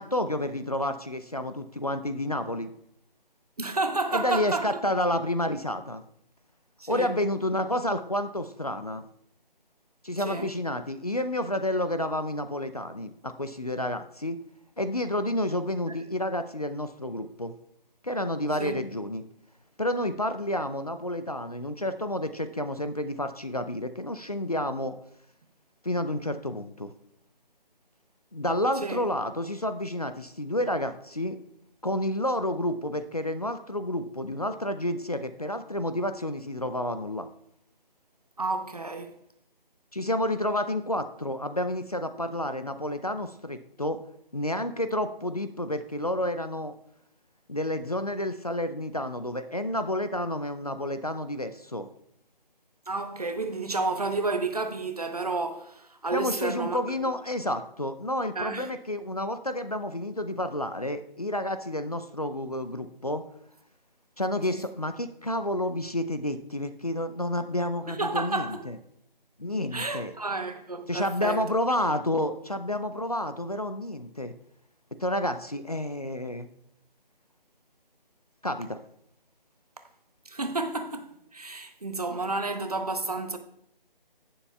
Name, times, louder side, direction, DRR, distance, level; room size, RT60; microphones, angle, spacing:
voice 1, 0.0-2.7 4.1-6.0 6.9-9.1 10.0-14.4 14.8-17.5 18.0-19.2 19.8-24.9 25.8-26.9 28.3-31.4 31.8-37.3 39.9-44.0 44.3-46.7 47.5-51.9 56.1-63.2 64.2-68.8 69.4-70.1 70.9-74.3 75.0-76.5 78.4-78.8, left 1 dB, 40° left, 0.4 m, -30 dB
voice 2, 3.6-4.7 6.8-7.1 10.3-10.5 18.6-18.8 28.8-29.0 38.4-39.1 52.9-56.8 58.4-58.7 64.5-64.6 67.9-68.7 69.7-71.4 80.3-83.4, right 3 dB, 40° right, 0.7 m, -31 dB
16.0 x 7.0 x 2.2 m
figure-of-eight pair, 175°, 29 cm